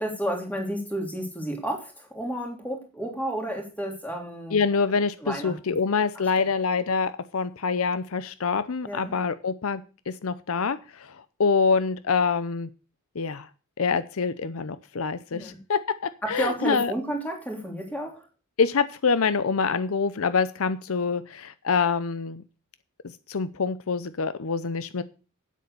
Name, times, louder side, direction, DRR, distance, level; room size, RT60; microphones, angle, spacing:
voice 1, 0.0-4.6 5.2-5.6 6.1-6.5 8.8-9.1 15.3-15.6 16.2-18.2, right 1 dB, 5° left, 1 dB, 3.1 m, -31 dB
voice 2, 4.5-12.7 13.2-13.5 13.8-16.9 18.6-22.4 23.3-25.0, left 5 dB, 65° left, 14 dB, 0.6 m, -26 dB
9.2 x 8.3 x 6.8 m, 0.34 s
head